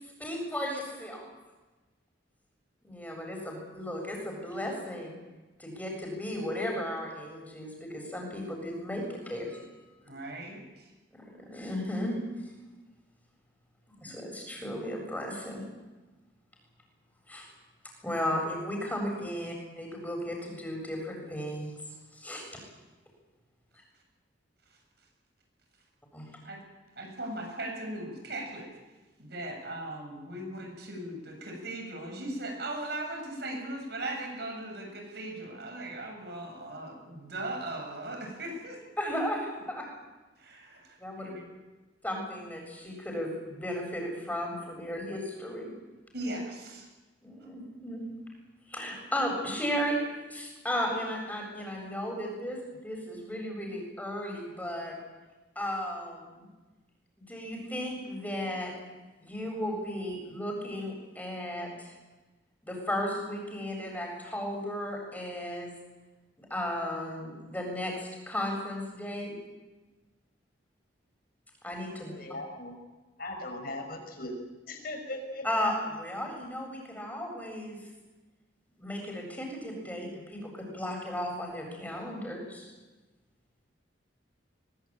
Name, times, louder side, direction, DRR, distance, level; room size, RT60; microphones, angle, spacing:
voice 1, 0.0-1.3 2.8-5.2 5.6-9.8 11.1-12.5 14.0-15.6 17.3-17.5 18.0-22.6 26.1-26.3 39.0-39.9 41.0-41.3 42.0-45.7 47.2-48.0 48.6-55.0 55.5-56.5 57.2-58.7 59.2-61.9 62.6-65.7 66.4-69.3 71.6-72.1 75.4-77.9 78.8-82.7, equal, 10° left, 1 dB, 7.6 m, -35 dB
voice 2, 10.1-10.9 26.4-26.6 27.0-28.7 29.2-38.8 40.4-41.4 46.1-46.9, right 1 dB, 60° right, 2 dB, 7.7 m, -38 dB
voice 3, 72.0-72.7 73.2-75.4, left 1 dB, 55° left, 4 dB, 5.2 m, -39 dB
23.0 x 21.5 x 9.0 m, 1.2 s
head